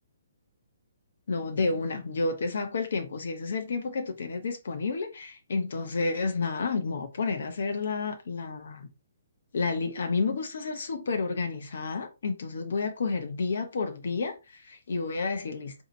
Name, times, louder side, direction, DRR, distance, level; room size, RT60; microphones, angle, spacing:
voice 1, 1.3-8.9 9.5-15.8, left 4 dB, 55° left, 0.6 m, -30 dB
4.1 x 2.7 x 2.5 m
hypercardioid pair, 175°, 0 cm